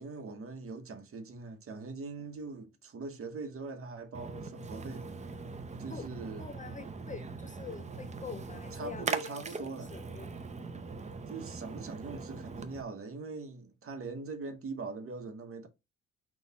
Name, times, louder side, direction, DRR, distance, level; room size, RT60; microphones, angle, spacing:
voice 1, 0.0-5.3 5.8-6.5 8.7-9.9 11.3-15.7, right 4 dB, 45° right, 1.0 m, -42 dB
Splash splatter, 4.1-12.8, right 4 dB, 25° right, 0.5 m, -41 dB
voice 2, 6.4-10.3, left 6 dB, 25° left, 0.4 m, -45 dB
4.1 x 2.4 x 4.0 m
cardioid pair, 90°, 30 cm